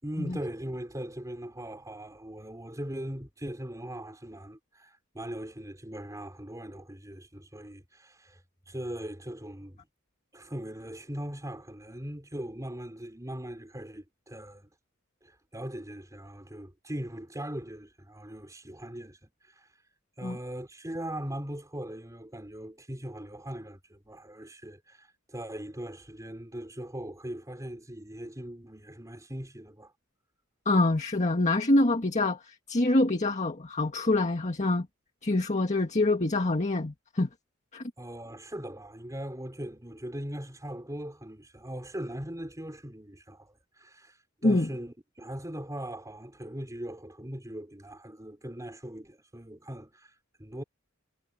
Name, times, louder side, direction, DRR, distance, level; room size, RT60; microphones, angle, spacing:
voice 1, 0.0-8.4 8.7-9.8 10.3-14.7 15.2-19.7 20.2-29.9 38.0-50.6, right 1 dB, 15° right, 5.3 m, -40 dB
voice 2, 30.7-34.9 35.2-37.3 37.7-37.8 44.4-44.7, left 2 dB, 35° left, 1.8 m, -25 dB
head